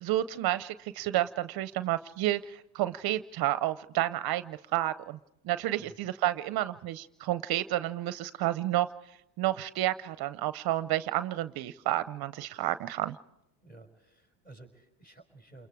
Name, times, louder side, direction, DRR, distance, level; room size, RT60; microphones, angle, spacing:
voice 1, 0.0-5.2 5.4-8.9 9.4-13.1, right 14 dB, 55° right, 13 dB, 0.7 m, -30 dB
voice 2, 13.6-15.7, right 2 dB, 20° left, 2 dB, 5.6 m, -53 dB
29.5 x 21.5 x 4.9 m, 0.84 s
supercardioid pair, 100°, 45 cm